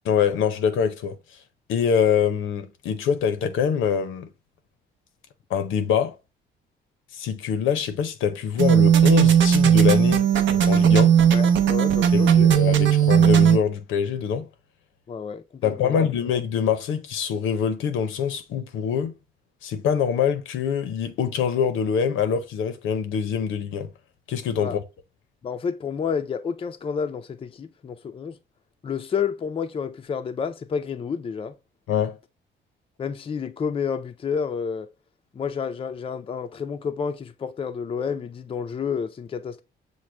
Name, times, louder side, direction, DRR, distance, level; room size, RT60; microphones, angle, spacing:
voice 1, 0.0-1.2 1.7-4.3 5.5-6.2 7.1-11.2 12.1-14.5 15.6-19.1 19.6-23.9 24.3-24.8 31.9-32.2, left 7 dB, 85° left, 0.7 m, -24 dB
sound 1, 8.6-13.6, right 8 dB, 70° right, 0.6 m, -17 dB
voice 2, 11.3-12.5 15.1-16.0 24.6-24.8 25.4-28.4 28.8-31.6 33.0-34.9 35.3-39.6, left 6 dB, 30° left, 0.4 m, -30 dB
6.3 x 2.1 x 3.2 m
cardioid pair, 90°, 20 cm